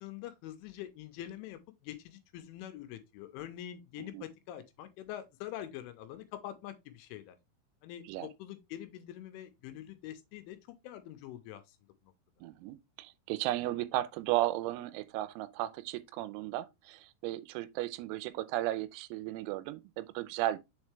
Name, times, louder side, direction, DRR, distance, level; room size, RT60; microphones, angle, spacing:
voice 1, 0.0-7.4 7.8-10.6 10.8-11.8 12.0-12.1, left 12 dB, 85° left, 3.0 m, -45 dB
voice 2, 12.4-20.6, right 15 dB, 90° right, 3.4 m, -35 dB
7.2 x 4.4 x 3.2 m
omnidirectional pair, 5.9 m